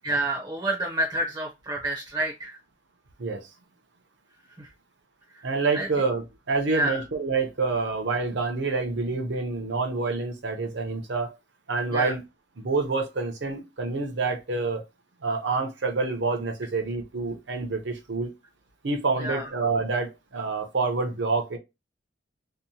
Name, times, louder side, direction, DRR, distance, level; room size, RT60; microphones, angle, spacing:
voice 1, 0.0-2.6 4.6-4.7 5.3-5.4 5.7-5.9 6.7-7.0 11.9-12.1 19.2-19.5, right 1 dB, 20° right, 0.6 m, -29 dB
voice 2, 5.4-11.4 11.7-12.2 12.6-14.8 15.2-18.3 18.8-21.6, right 3 dB, 65° right, 0.6 m, -27 dB
2.8 x 2.1 x 2.6 m
head